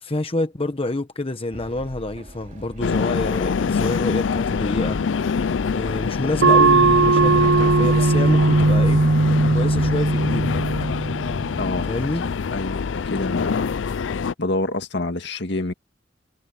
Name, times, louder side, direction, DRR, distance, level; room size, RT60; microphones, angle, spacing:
voice 1, 0.0-5.0 5.7-9.0 9.5-10.6 11.9-12.3, left 2 dB, 30° left, 1.1 m, -27 dB
Train, 1.5-7.8, right 1 dB, 40° right, 2.9 m, -41 dB
sound 1, 2.8-14.3, left 5 dB, 90° left, 0.5 m, -25 dB
sound 2, 6.4-11.5, right 3 dB, 65° right, 0.8 m, -18 dB
voice 2, 11.6-11.9 12.5-13.7 14.4-15.7, left 2 dB, 65° left, 2.0 m, -27 dB
head